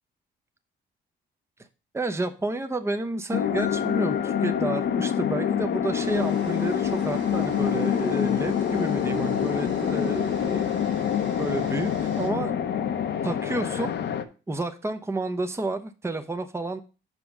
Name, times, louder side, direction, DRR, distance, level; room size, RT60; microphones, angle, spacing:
voice 1, 1.9-10.8 11.4-12.5 13.2-14.0 14.5-16.8, right 2 dB, 15° right, 7 dB, 0.8 m, -30 dB
sound 1, 3.3-14.2, left 9 dB, 60° left, 0.8 m, -26 dB
Mallet percussion, 3.6-6.1, left 11 dB, 80° left, 1.2 m, -42 dB
sound 2, 6.0-12.3, right 4 dB, 75° right, 1.7 m, -43 dB
5.3 x 5.2 x 6.0 m, 0.33 s
cardioid pair, 90°, 20 cm